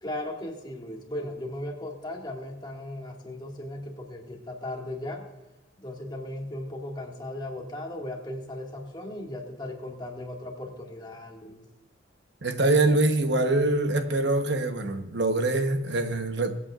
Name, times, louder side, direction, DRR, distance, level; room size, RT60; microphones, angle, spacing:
voice 1, 0.0-5.3 5.8-11.7, left 1 dB, 25° left, 1.9 m, -37 dB
voice 2, 12.4-16.5, right 2 dB, 70° right, 1.0 m, -24 dB
23.5 x 8.5 x 2.5 m
head